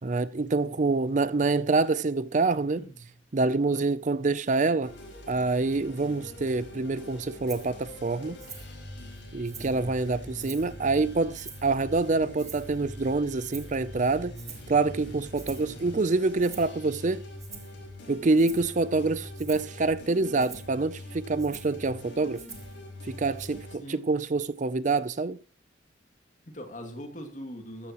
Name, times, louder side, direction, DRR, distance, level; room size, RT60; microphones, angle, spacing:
voice 1, 0.0-2.8 3.3-4.9 5.3-8.4 9.3-14.3 14.7-17.2 18.1-22.4 23.1-25.4, right 3 dB, 40° right, 0.5 m, -26 dB
voice 2, 2.7-3.1 9.5-9.9 23.8-24.0 26.5-27.9, equal, 40° left, 2.4 m, -42 dB
sound 1, 4.8-23.8, left 1 dB, 70° left, 5.2 m, -43 dB
Rattle (instrument), 7.5-7.7 8.4-8.7 9.1-9.8 10.4-10.7 11.3-11.7 12.4-12.8 13.4-13.8 14.3-14.7 15.3-15.7 16.4-16.7 17.4-17.8 18.3-18.7 19.3-19.7 20.4-20.7 21.4-21.8 22.3-22.8 23.4-23.5, right 6 dB, 20° right, 1.7 m, -46 dB
14.0 x 13.0 x 3.0 m
head